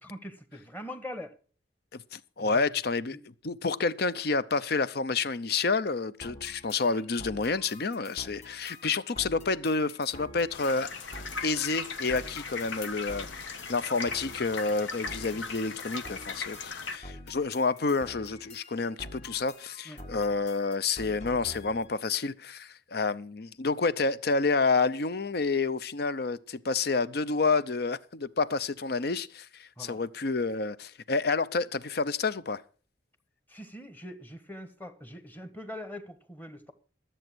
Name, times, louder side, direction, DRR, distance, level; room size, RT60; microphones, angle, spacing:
voice 1, 0.1-1.4 2.4-2.7 3.1-3.2 6.4-6.5 19.8-20.0 29.8-30.0 33.5-36.7, left 1 dB, 10° left, 1.3 m, -43 dB
voice 2, 1.9-3.2 3.4-10.9 11.4-32.6, left 4 dB, 55° left, 0.6 m, -29 dB
sound 1, 6.2-21.9, left 1 dB, 40° left, 1.5 m, -47 dB
sound 2, 10.5-17.0, left 4 dB, 85° left, 1.4 m, -38 dB
13.5 x 7.8 x 6.1 m
head